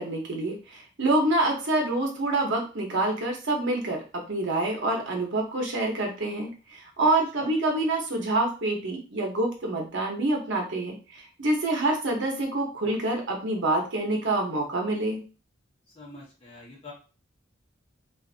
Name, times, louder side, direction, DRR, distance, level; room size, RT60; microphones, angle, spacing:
voice 1, 0.0-15.2, right 2 dB, 65° right, 0 dB, 0.8 m, -27 dB
voice 2, 15.9-16.9, left 2 dB, 30° left, -5 dB, 0.9 m, -45 dB
2.5 x 2.4 x 2.4 m, 0.34 s
head